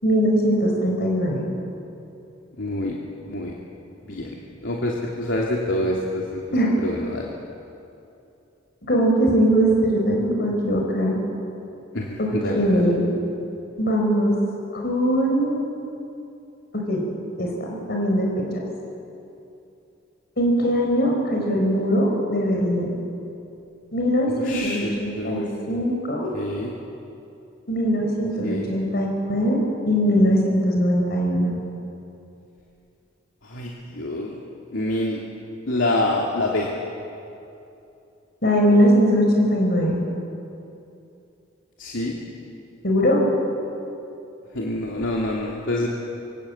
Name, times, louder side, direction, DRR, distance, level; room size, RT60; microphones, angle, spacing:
voice 1, 0.0-1.4 6.5-6.7 8.9-11.2 12.2-12.3 12.5-13.1 13.8-14.3 14.7-15.6 16.7-17.0 17.4-18.3 20.4-22.9 23.9-26.3 27.7-31.5 38.4-40.0 42.8-43.2, equal, 55° left, 0 dB, 5.1 m, -21 dB
voice 2, 2.6-2.9 3.3-3.5 4.0-4.3 4.6-6.4 6.8-7.3 11.9-12.9 24.4-25.8 26.3-26.7 28.4-28.7 33.4-34.4 34.7-35.2 35.7-36.7 41.8-42.2 44.5-45.9, left 1 dB, 85° left, -2 dB, 2.9 m, -26 dB
25.5 x 24.5 x 8.7 m, 2.7 s
head